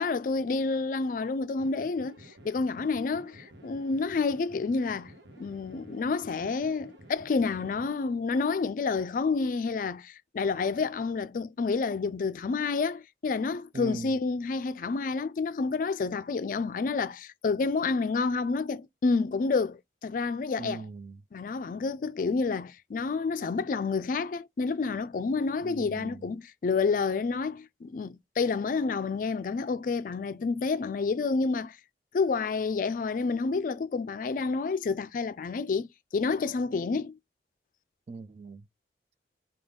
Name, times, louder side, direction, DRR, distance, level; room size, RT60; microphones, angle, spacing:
voice 1, 0.0-5.1 5.4-20.8 21.3-31.8 32.1-35.9 36.1-37.2, left 4 dB, 50° left, 0.3 m, -29 dB
sound 1, 1.6-7.9, right 1 dB, 85° right, 1.0 m, -52 dB
voice 2, 13.7-14.2 20.6-21.2 25.6-26.3 38.1-38.7, right 3 dB, 35° right, 0.3 m, -40 dB
5.1 x 2.3 x 3.6 m
head